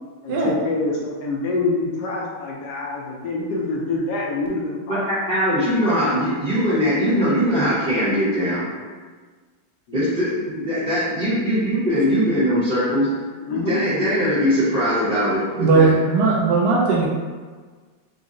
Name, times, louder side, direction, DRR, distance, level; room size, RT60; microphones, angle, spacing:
voice 1, 0.2-5.1 9.9-10.0 13.4-13.8, left 3 dB, 70° left, -3 dB, 1.0 m, -26 dB
voice 2, 4.9-8.6 9.9-13.1 13.5-15.9, equal, 40° right, -13 dB, 0.9 m, -21 dB
voice 3, 15.6-17.1, right 4 dB, 70° right, -4 dB, 1.1 m, -17 dB
3.9 x 2.1 x 3.6 m, 1.5 s
omnidirectional pair, 2.0 m